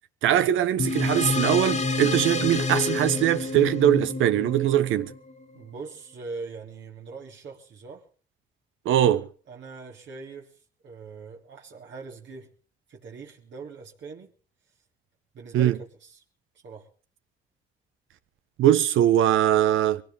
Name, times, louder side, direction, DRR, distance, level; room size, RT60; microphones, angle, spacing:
voice 1, 0.2-5.1 8.8-9.3 15.5-15.8 18.6-20.0, right 11 dB, 85° right, 1.1 m, -21 dB
sound 1, 0.8-5.6, left 3 dB, 35° left, 1.9 m, -28 dB
voice 2, 5.5-8.1 9.5-10.5 10.8-12.5 12.9-14.3 15.3-16.2 16.6-16.9, right 4 dB, 65° right, 3.2 m, -41 dB
22.0 x 17.5 x 3.6 m
cardioid pair, 90°, 20 cm